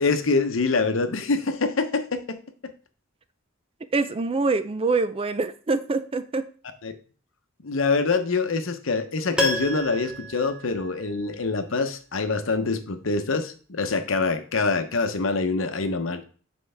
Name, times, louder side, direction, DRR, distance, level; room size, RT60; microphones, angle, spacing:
voice 1, 0.0-2.4 2.6-2.7 6.8-6.9 7.6-16.2, left 4 dB, 75° left, 0.8 m, -25 dB
voice 2, 3.9-6.4, right 3 dB, 30° right, 0.4 m, -25 dB
Piano, 9.4-11.4 11.7-11.8, left 1 dB, 5° right, 1.0 m, -30 dB
7.8 x 4.7 x 3.4 m
head